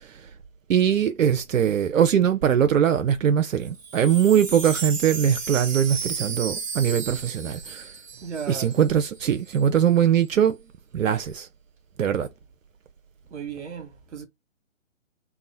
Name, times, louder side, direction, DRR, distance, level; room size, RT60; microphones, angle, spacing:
voice 1, 0.7-7.9 8.5-10.6 10.9-11.5 12.0-12.3, right 9 dB, 80° right, 0.5 m, -21 dB
Wind chime, 3.7-8.9 9.1-9.2 9.5-9.9, right 6 dB, 25° right, 0.6 m, -34 dB
voice 2, 8.2-8.7 13.3-14.3, right 7 dB, 60° right, 1.0 m, -35 dB
2.9 x 2.0 x 2.5 m
figure-of-eight pair, 140°, 39 cm